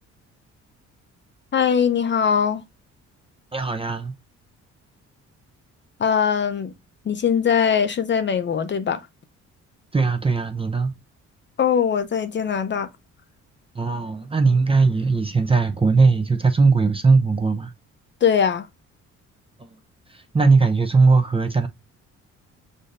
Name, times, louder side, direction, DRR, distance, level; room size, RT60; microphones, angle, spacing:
voice 1, 1.5-2.6 6.0-6.7 7.1-9.0 11.6-12.9 18.2-18.7, left 7 dB, 40° left, 0.6 m, -21 dB
voice 2, 3.5-4.1 9.9-10.9 13.7-17.7 19.6-19.7 20.1-21.7, right 4 dB, 20° right, 0.5 m, -19 dB
6.4 x 2.6 x 2.5 m
cardioid pair, 90°, 30 cm